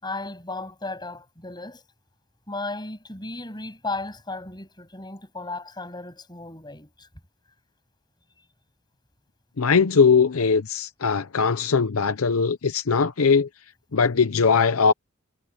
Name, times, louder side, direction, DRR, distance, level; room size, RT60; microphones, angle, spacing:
voice 1, 0.0-1.8 2.5-7.1, left 2 dB, 20° left, 7.6 m, -35 dB
voice 2, 9.6-13.5 13.9-14.9, left 5 dB, 85° left, 0.7 m, -20 dB
head